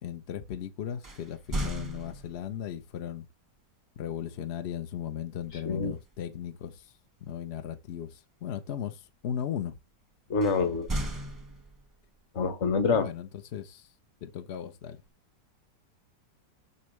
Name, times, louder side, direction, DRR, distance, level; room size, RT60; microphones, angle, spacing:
voice 1, 0.0-3.3 4.0-6.9 7.2-9.8 12.9-13.9 14.2-15.0, left 9 dB, 80° left, 0.5 m, -37 dB
sound 1, 1.0-2.7 5.4-5.7 6.2-6.4 10.4-12.1, right 1 dB, 20° right, 0.5 m, -36 dB
voice 2, 10.3-10.9 12.3-13.1, left 4 dB, 45° left, 1.1 m, -26 dB
7.1 x 6.0 x 3.1 m
omnidirectional pair, 1.9 m